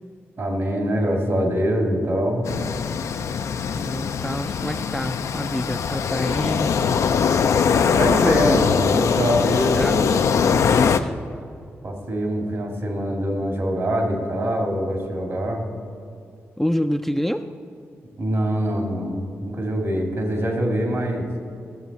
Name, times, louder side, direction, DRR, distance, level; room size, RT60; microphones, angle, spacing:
voice 1, 0.4-2.5 8.0-10.2 11.8-15.7 18.2-21.3, equal, 55° right, 2 dB, 2.1 m, -24 dB
sound 1, 2.4-11.0, left 6 dB, 70° left, 0.4 m, -21 dB
voice 2, 3.7-6.8 9.7-11.1 16.6-17.5, equal, 5° left, 7 dB, 0.4 m, -28 dB
14.0 x 7.3 x 4.1 m, 2.5 s
supercardioid pair, 50°, 5 cm